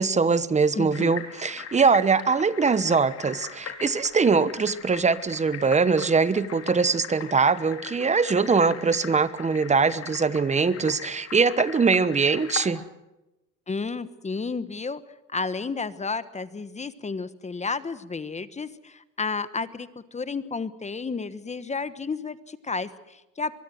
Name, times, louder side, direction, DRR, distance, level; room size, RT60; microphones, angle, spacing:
voice 1, 0.0-12.8, right 5 dB, 20° right, 16 dB, 1.1 m, -22 dB
voice 2, 0.7-1.2 13.7-15.0 15.3-23.5, left 4 dB, 20° left, 14 dB, 1.2 m, -32 dB
sound 1, 0.9-12.7, left 7 dB, 40° left, 4.3 m, -40 dB
23.5 x 23.0 x 7.8 m, 0.98 s
cardioid pair, 130°, 37 cm